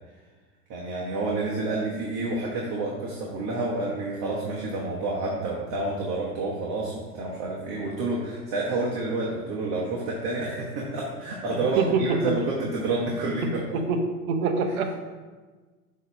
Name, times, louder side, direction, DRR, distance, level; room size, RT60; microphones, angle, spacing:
voice 1, 0.7-13.8, right 2 dB, 45° right, -4 dB, 1.3 m, -29 dB
voice 2, 11.8-12.4 13.4-15.0, right 4 dB, 65° right, 5 dB, 1.0 m, -25 dB
6.6 x 3.2 x 5.1 m, 1.3 s
hypercardioid pair, 95°, 46 cm